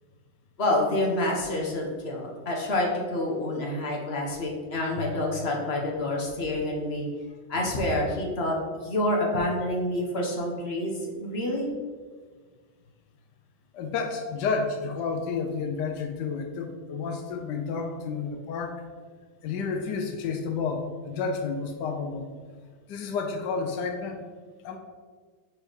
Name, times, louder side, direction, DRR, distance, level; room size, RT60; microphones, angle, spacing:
voice 1, 0.6-7.1 7.5-8.6 8.8-11.7, left 1 dB, 45° left, -1 dB, 0.9 m, -28 dB
voice 2, 13.7-18.8 19.4-22.3 22.9-24.2 24.6-24.8, left 5 dB, 70° left, 4 dB, 1.1 m, -30 dB
4.6 x 4.5 x 5.1 m, 1.5 s
omnidirectional pair, 2.2 m